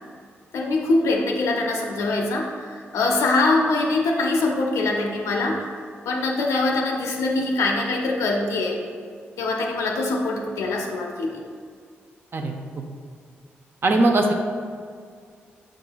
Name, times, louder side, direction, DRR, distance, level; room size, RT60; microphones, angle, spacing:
voice 1, 0.5-5.7 6.1-8.8 9.4-11.4, left 2 dB, 75° left, 1 dB, 0.6 m, -23 dB
voice 2, 13.8-14.3, right 2 dB, 50° right, 3 dB, 0.6 m, -19 dB
5.8 x 3.7 x 2.3 m, 2.1 s
supercardioid pair, 45°, 5 cm